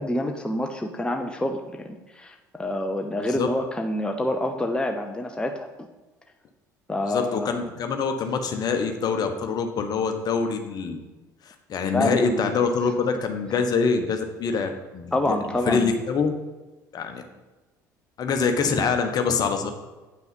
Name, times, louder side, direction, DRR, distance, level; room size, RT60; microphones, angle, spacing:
voice 1, 0.0-5.7 6.9-7.5 11.9-12.5 15.1-16.0, left 1 dB, 10° left, 3 dB, 0.8 m, -27 dB
voice 2, 7.0-11.0 11.4-15.4 15.7-16.3 16.9-17.2 18.2-19.7, left 5 dB, 40° left, 6 dB, 1.1 m, -25 dB
9.0 x 6.0 x 5.4 m, 1.2 s
figure-of-eight pair, 55°, 10 cm